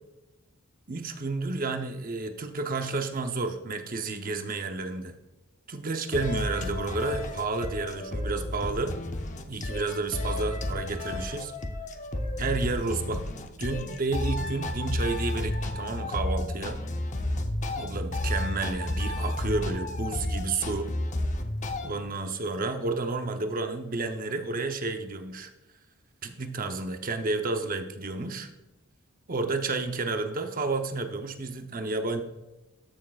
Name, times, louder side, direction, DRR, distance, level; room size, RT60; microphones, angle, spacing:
voice 1, 0.9-5.1 5.7-8.9 9.5-11.5 12.4-16.8 17.7-20.9 21.8-25.5 26.2-28.5 29.3-32.2, right 3 dB, 45° right, 6 dB, 0.8 m, -31 dB
sound 1, 6.1-21.9, left 1 dB, 40° left, 0.7 m, -32 dB
14.0 x 6.5 x 2.4 m, 1.0 s
head